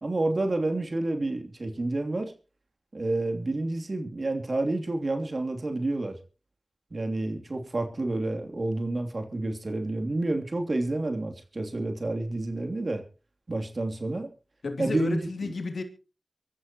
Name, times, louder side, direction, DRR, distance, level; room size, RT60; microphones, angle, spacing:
voice 1, 0.0-2.3 2.9-6.2 6.9-13.0 13.5-14.3 14.8-15.5, right 2 dB, 55° right, 3.0 m, -29 dB
voice 2, 14.6-15.8, left 3 dB, 80° left, 2.9 m, -31 dB
24.5 x 13.0 x 3.0 m
cardioid pair, 50°, 0 cm